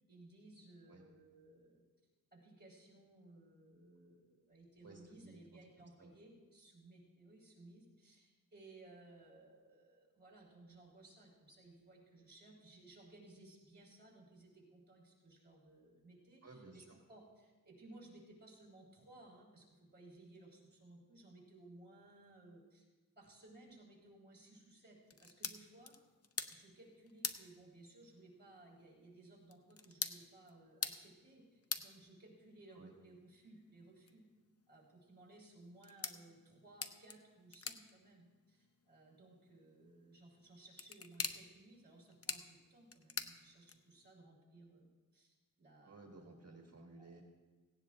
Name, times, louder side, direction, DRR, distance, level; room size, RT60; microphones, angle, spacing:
voice 1, 0.1-1.8 2.3-22.8 23.2-25.9 26.5-34.2 34.7-46.0 47.0-47.2, right 2 dB, 30° right, -4 dB, 4.4 m, -60 dB
voice 2, 4.8-6.1 16.4-17.0 32.7-32.9 45.8-47.2, right 3 dB, 45° right, 0 dB, 1.8 m, -57 dB
sound 1, 25.0-44.1, left 5 dB, 45° left, 0.7 m, -48 dB
17.5 x 16.5 x 2.6 m, 1.3 s
wide cardioid pair, 125°, 33 cm